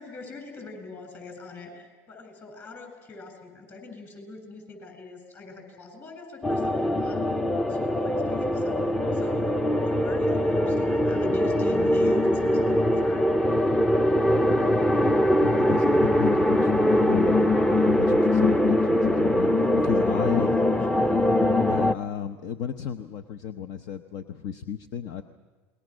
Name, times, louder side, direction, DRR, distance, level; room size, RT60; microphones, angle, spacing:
voice 1, 0.0-7.4 7.7-13.3 20.0-21.2, left 3 dB, 35° left, 5 dB, 7.8 m, -42 dB
sound 1, 6.4-21.9, left 1 dB, 10° left, 0.6 m, -22 dB
voice 2, 15.4-17.4 17.7-20.5 21.6-25.2, left 8 dB, 60° left, 9 dB, 0.9 m, -34 dB
28.5 x 21.5 x 6.3 m, 1.4 s
supercardioid pair, 110°, 8 cm